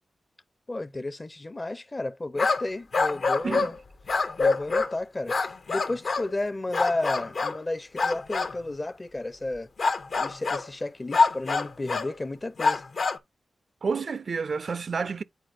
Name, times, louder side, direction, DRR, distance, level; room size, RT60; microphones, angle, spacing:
voice 1, 0.7-3.7 4.4-5.3 5.7-9.7 10.2-12.8, left 2 dB, 30° left, 0.5 m, -32 dB
sound 1, 2.4-2.7 2.9-3.8 4.1-4.9 5.3-6.3 6.7-7.6 8.0-8.6 9.8-10.7 11.1-12.1 12.6-13.2, left 4 dB, 65° left, 0.8 m, -25 dB
voice 2, 13.8-15.2, right 5 dB, 65° right, 0.4 m, -29 dB
9.3 x 4.3 x 2.5 m
cardioid pair, 75°, 0 cm